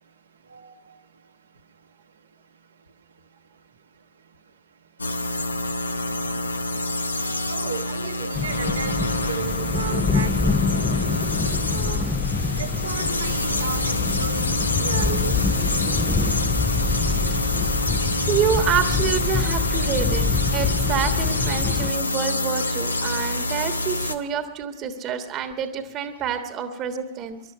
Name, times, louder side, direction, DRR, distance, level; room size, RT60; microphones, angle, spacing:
sound 1, 5.0-24.1, left 1 dB, 80° left, 0.8 m, -26 dB
voice 1, 7.5-10.6 11.7-12.1 12.6-15.4, right 6 dB, 70° right, 6 dB, 1.3 m, -34 dB
sound 2, 8.3-21.9, left 5 dB, 15° left, 0.7 m, -26 dB
voice 2, 18.3-20.3 20.5-27.4, right 8 dB, 35° right, 8 dB, 1.4 m, -27 dB
20.5 x 11.5 x 5.5 m, 0.86 s
figure-of-eight pair, 90°, 0 cm